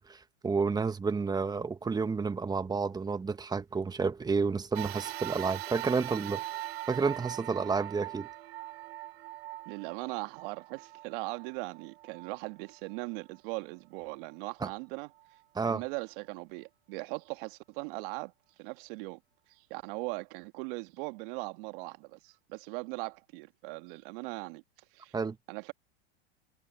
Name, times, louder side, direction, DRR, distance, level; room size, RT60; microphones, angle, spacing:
voice 1, 0.0-6.4 6.9-8.3 14.6-14.7 15.5-15.8 25.1-25.4, right 4 dB, 10° right, 1.5 m, -30 dB
sound 1, 4.7-13.4 14.0-14.1 15.2-15.3, right 15 dB, 75° right, 1.1 m, -41 dB
voice 2, 9.7-15.1 15.7-18.3 18.6-19.2 19.7-24.6 24.9-25.1 25.5-25.7, right 26 dB, 55° right, 1.9 m, -39 dB
hypercardioid pair, 115°, 31 cm